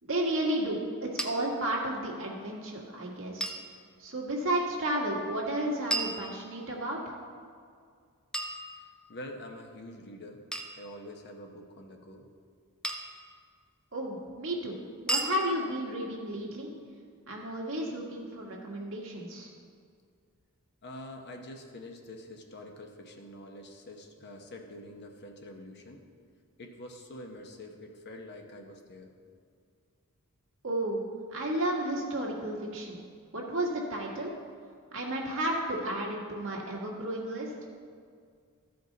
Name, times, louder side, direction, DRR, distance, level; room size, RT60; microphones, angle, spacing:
voice 1, 0.0-3.5 4.0-7.0 13.9-14.8 15.1-16.7 17.3-19.5 30.6-31.0 31.3-33.0 33.3-34.3 34.9-37.5, right 1 dB, 60° right, -2 dB, 1.6 m, -32 dB
sound 1, 1.2-1.3 3.4-3.7 5.9-6.8 8.3-9.2 10.5-10.8 12.8-13.2 15.1-15.4, right 1 dB, 5° left, 0.6 m, -34 dB
voice 2, 8.7-10.4 10.7-12.3 20.8-26.0 26.6-29.1, left 1 dB, 50° left, 3 dB, 0.9 m, -46 dB
14.0 x 5.3 x 4.0 m, 2.2 s
head